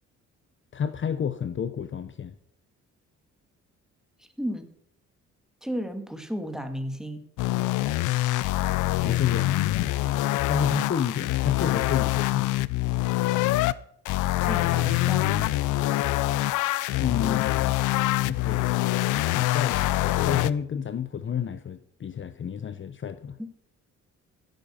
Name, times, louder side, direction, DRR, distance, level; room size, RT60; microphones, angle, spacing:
voice 1, 0.7-2.3 8.6-9.9 10.5-12.7 17.0-17.8 18.2-18.7 19.3-23.4, left 7 dB, 40° left, 12 dB, 0.8 m, -30 dB
voice 2, 4.2-4.7 5.6-7.2 14.4-15.5 23.4-23.5, equal, ahead, 7 dB, 2.0 m, -33 dB
sound 1, 7.4-13.7 14.1-20.5, left 17 dB, 90° left, 0.5 m, -25 dB
15.5 x 9.1 x 5.6 m, 0.71 s
cardioid pair, 90°, 30 cm